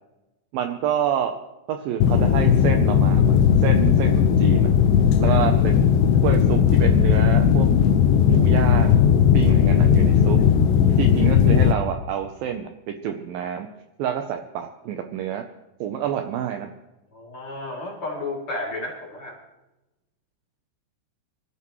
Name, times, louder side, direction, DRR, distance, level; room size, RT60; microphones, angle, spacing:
voice 1, 0.5-1.4 1.7-4.7 5.2-5.9 6.2-7.7 8.3-10.4 11.0-13.7 14.0-15.4 15.8-16.7, right 9 dB, 80° right, 6 dB, 2.2 m, -28 dB
sound 1, 2.0-11.7, left 8 dB, 85° left, 3.0 m, -17 dB
voice 2, 17.1-19.4, left 2 dB, 35° left, -3 dB, 3.2 m, -32 dB
24.5 x 13.5 x 3.1 m, 1.0 s
omnidirectional pair, 4.8 m